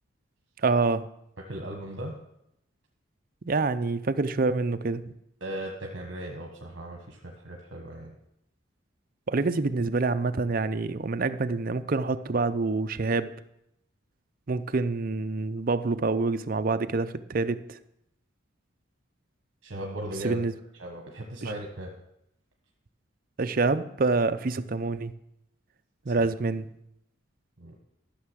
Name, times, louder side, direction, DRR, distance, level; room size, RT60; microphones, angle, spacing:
voice 1, 0.6-1.1 3.4-5.0 9.3-13.3 14.5-17.8 20.2-20.5 21.4-21.5 23.4-25.1 26.1-26.7, right 3 dB, 40° right, 11 dB, 0.5 m, -26 dB
voice 2, 1.5-2.1 5.4-8.1 19.6-20.4 20.8-21.9 26.0-26.3 27.6-27.7, right 1 dB, 60° right, 1 dB, 1.2 m, -37 dB
13.0 x 6.7 x 6.3 m, 0.81 s
head